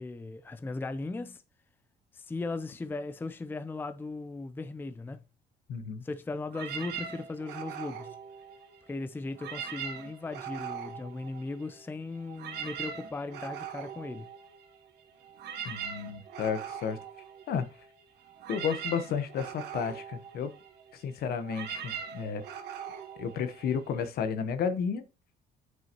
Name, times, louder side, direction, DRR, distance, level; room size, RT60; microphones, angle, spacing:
voice 1, 0.0-1.4 2.1-5.2 6.0-8.2 8.9-14.3, left 3 dB, 10° left, 0.5 m, -37 dB
voice 2, 5.7-6.0 15.6-17.0 17.5-17.7 18.5-20.5 20.9-22.4 23.2-25.0, left 7 dB, 65° left, 1.0 m, -32 dB
sound 1, 6.5-8.9 9.3-11.8 12.1-24.1, right 7 dB, 75° right, 1.3 m, -41 dB
9.3 x 5.4 x 3.0 m
cardioid pair, 110°, 17 cm